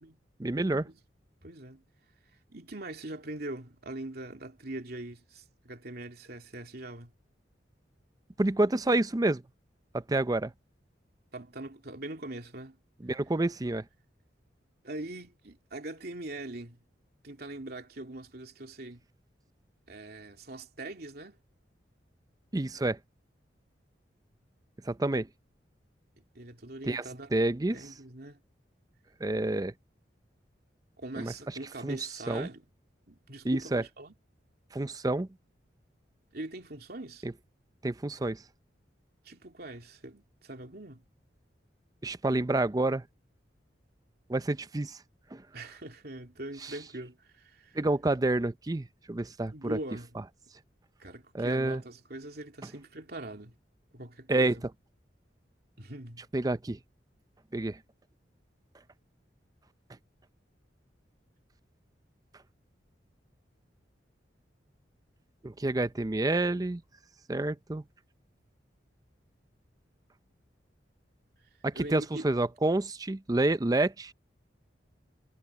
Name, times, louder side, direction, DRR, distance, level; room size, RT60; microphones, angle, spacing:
voice 1, 0.4-0.9 8.4-9.4 9.9-10.5 13.0-13.8 22.5-23.0 24.9-25.3 26.9-27.0 27.3-27.9 29.2-29.7 31.2-31.3 31.8-32.0 32.3-32.5 33.4-33.8 34.7-35.3 37.2-37.3 37.8-38.4 42.0-43.0 44.3-45.0 45.3-45.4 46.6-46.7 47.7-49.8 51.3-51.8 54.3-54.5 56.3-56.8 57.5-57.8 65.4-66.8 67.3-67.8 71.6-74.1, right 2 dB, 20° right, 0.5 m, -28 dB
voice 2, 1.4-1.8 2.5-7.1 11.3-12.8 14.8-16.8 17.2-19.0 19.9-21.4 26.3-27.3 27.7-28.4 31.0-32.7 33.1-34.1 36.3-37.2 39.2-41.0 45.5-47.8 49.5-50.1 51.0-53.6 53.9-54.6 55.8-56.3 71.7-72.3, right 2 dB, 60° right, 2.9 m, -42 dB
head